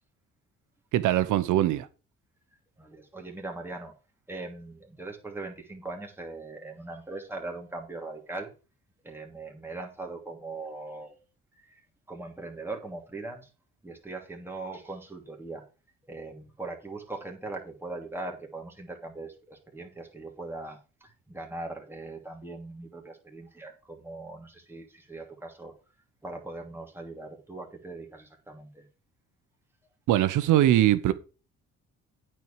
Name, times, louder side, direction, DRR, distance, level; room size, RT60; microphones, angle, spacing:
voice 1, 0.9-1.9 30.1-31.1, right 13 dB, 80° right, 0.9 m, -22 dB
voice 2, 2.8-3.9 4.3-8.5 9.0-11.2 11.5-11.8 12.1-13.5 13.8-15.6 16.1-25.7 26.2-28.9, right 2 dB, 5° right, 2.8 m, -40 dB
9.2 x 4.6 x 7.3 m
cardioid pair, 90°, 30 cm